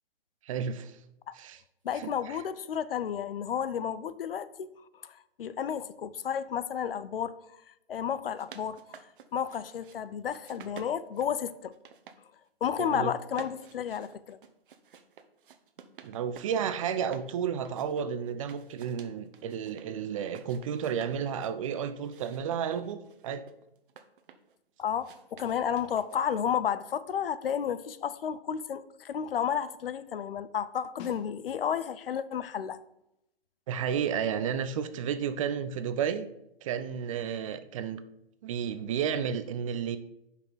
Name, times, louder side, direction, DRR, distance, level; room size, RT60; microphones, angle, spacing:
voice 1, 0.5-0.9 1.3-1.6 1.9-2.4 12.8-13.1 16.0-23.4 33.7-36.3 36.6-38.0 38.4-40.0, right 8 dB, 35° right, 0.6 m, -32 dB
voice 2, 1.8-4.5 5.0-7.6 7.9-8.8 9.3-11.7 12.6-14.4 24.8-32.8, left 8 dB, 65° left, 0.7 m, -32 dB
sound 1, 8.1-10.0 10.3-12.2 12.5-13.0 13.3-17.3 17.6-19.9 20.2-21.6 22.0-24.5 25.0-26.5, right 7 dB, 60° right, 1.0 m, -52 dB
Snare drum, 31.0-31.9 36.4-36.5, left 7 dB, 20° left, 0.6 m, -51 dB
10.5 x 5.7 x 4.0 m
hypercardioid pair, 135°, 30 cm